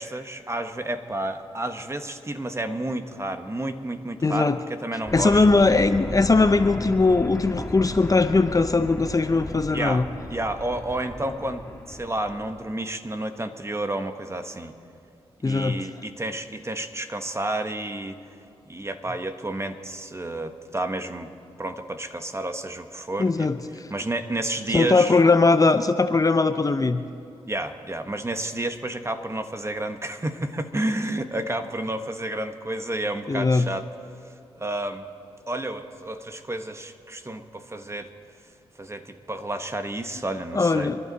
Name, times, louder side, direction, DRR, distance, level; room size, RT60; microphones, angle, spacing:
voice 1, 0.0-5.4 9.7-10.0 10.3-11.6 11.9-14.7 15.4-18.2 18.7-21.3 21.6-23.5 23.9-25.2 27.5-33.9 34.5-35.0 35.5-38.1 38.8-40.9, right 1 dB, 25° right, 7 dB, 1.4 m, -30 dB
voice 2, 4.2-4.6 5.1-10.1 15.4-15.9 23.2-23.6 24.7-27.0 33.3-33.7 40.5-41.0, left 3 dB, 35° left, 10 dB, 0.8 m, -20 dB
sound 1, 5.1-12.5, left 1 dB, 20° left, 2.0 m, -35 dB
27.0 x 11.5 x 4.2 m, 2.6 s
supercardioid pair, 45°, 11 cm